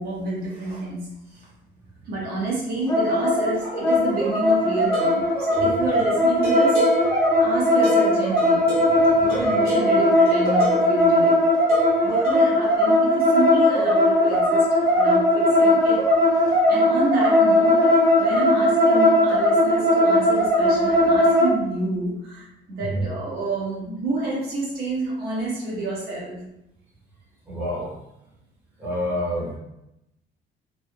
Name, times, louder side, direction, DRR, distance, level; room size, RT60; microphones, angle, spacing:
voice 1, 0.0-1.5 2.0-6.9 7.4-8.7 9.2-11.4 12.0-14.7 14.9-16.1 16.7-26.4, right 2 dB, 55° right, -6 dB, 1.1 m, -29 dB
sound 1, 2.9-21.5, left 1 dB, 20° left, 0.8 m, -19 dB
sound 2, 4.8-11.1 11.7-12.5, right 3 dB, 35° right, 1.2 m, -33 dB
voice 2, 8.7-9.3 22.8-23.1 27.5-27.9 28.8-29.6, equal, 10° right, -8 dB, 0.8 m, -28 dB
3.3 x 2.8 x 2.2 m, 0.86 s
cardioid pair, 180°, 19 cm